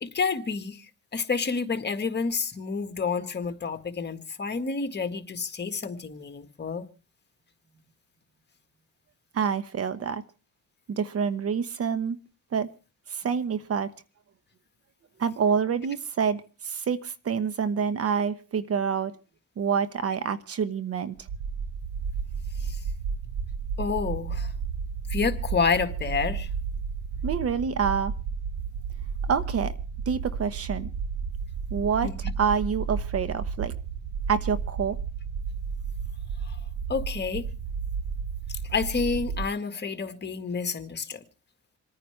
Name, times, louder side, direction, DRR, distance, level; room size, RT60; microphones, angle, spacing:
voice 1, 0.0-6.9 22.6-22.8 23.8-24.5 25.1-26.5 32.0-32.2 36.4-36.6 36.9-37.5 38.5-41.2, left 5 dB, 35° left, 1.7 m, -29 dB
voice 2, 9.3-10.2 10.9-12.2 12.5-12.7 13.1-13.9 15.2-19.2 19.6-21.1 27.2-28.1 29.3-29.7 30.1-30.9 31.7-32.1 32.4-33.7 34.3-35.0, right 6 dB, 50° right, 1.1 m, -27 dB
sound 1, 21.2-39.5, right 6 dB, 75° right, 0.9 m, -32 dB
27.5 x 9.6 x 3.2 m
cardioid pair, 90°, 30 cm